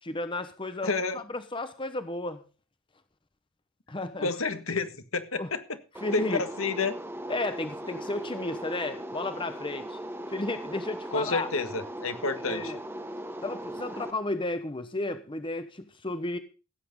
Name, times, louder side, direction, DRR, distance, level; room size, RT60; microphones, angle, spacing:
voice 1, 0.0-2.4 3.9-4.3 5.4-5.5 6.0-6.4 7.3-10.0 10.3-11.5 12.4-12.8 13.4-16.4, left 2 dB, 25° left, 1.0 m, -33 dB
voice 2, 0.8-1.2 4.2-5.6 6.1-7.0 11.1-12.7, left 4 dB, 70° left, 1.7 m, -30 dB
sound 1, 5.9-14.1, right 1 dB, 10° right, 1.2 m, -39 dB
16.0 x 8.6 x 5.4 m
head